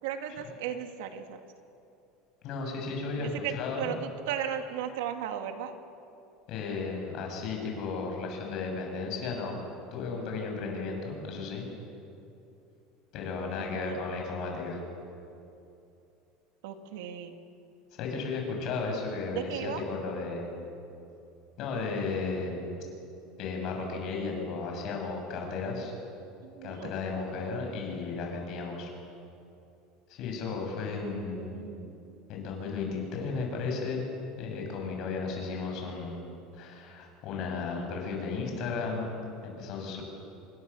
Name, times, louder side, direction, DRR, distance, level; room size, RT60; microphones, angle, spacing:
voice 1, 0.0-1.5 3.2-5.7 13.6-14.0 16.6-17.4 19.3-19.8 26.4-27.1 31.0-32.0, right 9 dB, 75° right, 6 dB, 2.2 m, -36 dB
voice 2, 2.4-3.9 6.5-9.6 9.9-11.7 13.1-14.8 18.0-20.7 21.6-22.6 23.4-25.9 26.6-28.9 30.1-31.6 32.3-34.0 34.4-36.2 36.5-40.0, left 4 dB, 45° left, 1 dB, 7.0 m, -34 dB
27.5 x 23.5 x 7.0 m, 2.6 s
cardioid pair, 170°, 0 cm